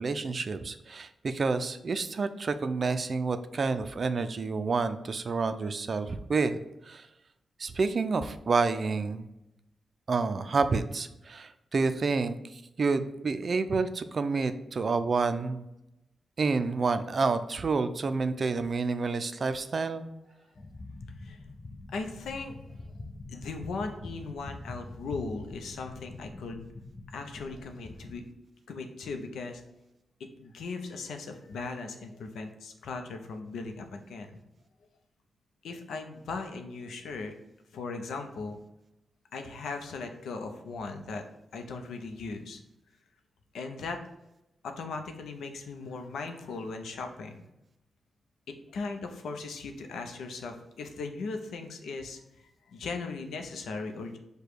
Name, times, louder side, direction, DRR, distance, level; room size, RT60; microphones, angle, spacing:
voice 1, 0.0-7.1 7.6-9.3 10.1-15.7 16.4-20.0, right 4 dB, 55° right, 10 dB, 0.4 m, -29 dB
sound 1, 20.5-28.2, left 2 dB, 40° left, 0.6 m, -44 dB
voice 2, 21.9-22.6 23.3-26.6 27.1-28.2 28.7-29.6 30.2-34.3 35.6-37.3 37.7-38.6 39.3-41.2 41.5-42.6 43.5-44.0 44.6-47.4 48.5-52.2 52.7-54.2, left 4 dB, 85° left, 5 dB, 0.5 m, -38 dB
4.9 x 2.2 x 4.5 m, 0.89 s
cardioid pair, 65°, 0 cm